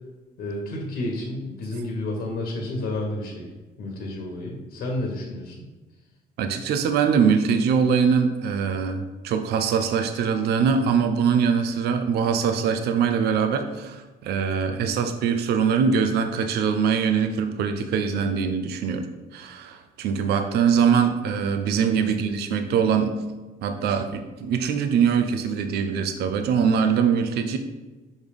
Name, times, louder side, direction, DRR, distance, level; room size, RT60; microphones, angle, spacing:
voice 1, 0.4-3.5 3.8-5.7 21.9-22.2, left 1 dB, 65° left, 0 dB, 1.4 m, -31 dB
voice 2, 6.4-19.1 19.3-23.2 23.6-27.6, right 6 dB, 70° right, 7 dB, 0.6 m, -23 dB
6.3 x 3.4 x 5.2 m, 1.2 s
cardioid pair, 110°, 17 cm